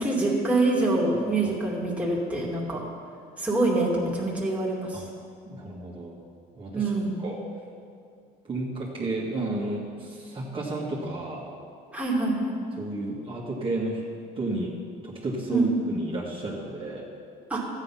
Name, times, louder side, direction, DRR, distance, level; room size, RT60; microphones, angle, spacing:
voice 1, 0.0-2.8 3.4-5.0 6.7-7.2 11.9-12.5 15.5-15.7 17.5-17.6, right 2 dB, 10° right, -4 dB, 2.6 m, -25 dB
voice 2, 1.4-1.7 4.9-5.0 5.5-6.2 6.6-6.9 7.2-7.4 8.4-11.5 12.8-14.0 14.3-14.7 15.0-17.1, right 2 dB, 30° right, -5 dB, 2.1 m, -32 dB
13.0 x 9.0 x 5.8 m, 2.3 s
cardioid pair, 110°, 17 cm